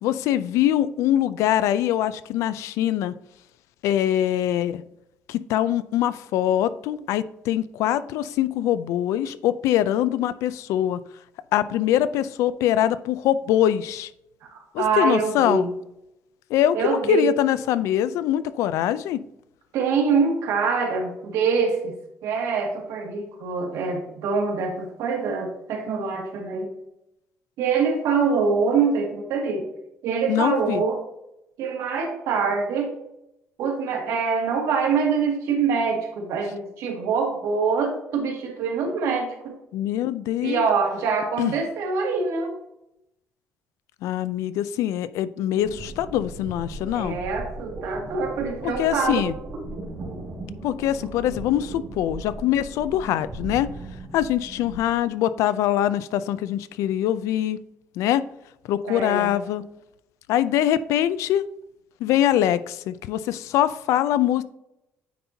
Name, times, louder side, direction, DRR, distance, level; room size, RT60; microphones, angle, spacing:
voice 1, 0.0-3.1 3.8-4.8 5.3-11.0 11.5-14.1 14.7-15.6 16.5-19.2 30.3-30.8 39.7-40.7 41.4-41.5 44.0-47.2 48.6-49.3 50.6-53.7 54.1-57.6 58.0-58.2 58.7-59.6 60.3-61.4 62.0-64.4, left 11 dB, 85° left, 15 dB, 0.4 m, -23 dB
voice 2, 14.5-15.7 16.7-17.3 19.7-21.9 22.2-26.7 27.6-29.7 30.0-31.0 31.6-32.9 33.6-39.6 40.4-42.5 46.9-49.3 58.9-59.3, right 5 dB, 90° right, 0 dB, 2.0 m, -24 dB
sound 1, 45.5-55.0, right 2 dB, 50° right, 2.2 m, -37 dB
9.2 x 4.3 x 2.8 m, 0.85 s
cardioid pair, 165°, 5 cm